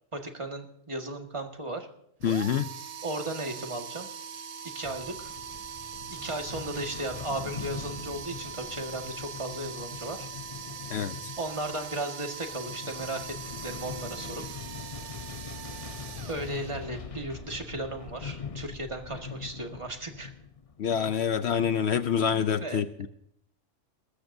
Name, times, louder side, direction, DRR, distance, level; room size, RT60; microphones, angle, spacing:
voice 1, 0.1-1.9 3.0-4.1 4.7-5.3 6.1-10.3 11.4-13.4 13.6-14.4 16.3-20.3 22.6-22.8, right 1 dB, 25° right, 3 dB, 1.7 m, -35 dB
voice 2, 2.2-2.7 10.9-11.2 20.8-23.1, left 8 dB, 65° left, 12 dB, 0.8 m, -26 dB
sound 1, 2.2-17.1, right 6 dB, 60° right, 0.4 m, -41 dB
sound 2, 4.8-22.3, left 6 dB, 35° left, 0.6 m, -43 dB
21.0 x 14.0 x 2.7 m, 0.72 s
omnidirectional pair, 1.3 m